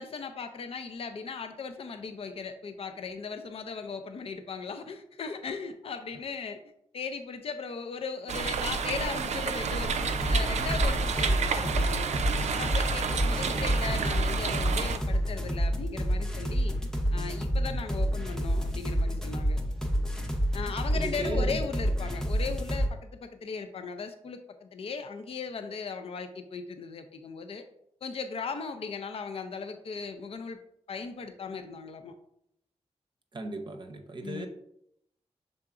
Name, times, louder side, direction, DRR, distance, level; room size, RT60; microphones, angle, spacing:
voice 1, 0.0-6.6 6.9-12.0 12.4-16.8 17.1-19.6 20.5-27.6 28.0-30.6 30.9-32.1 34.2-34.5, left 5 dB, 60° left, 7 dB, 0.4 m, -37 dB
sound 1, 8.3-15.0, right 5 dB, 85° right, 0.4 m, -30 dB
sound 2, 10.2-22.9, equal, 5° left, 0.6 m, -29 dB
voice 2, 13.3-14.1 20.9-21.6 33.3-34.5, right 2 dB, 45° right, 4 dB, 0.6 m, -38 dB
5.6 x 3.8 x 2.4 m, 0.75 s
wide cardioid pair, 105°, 11 cm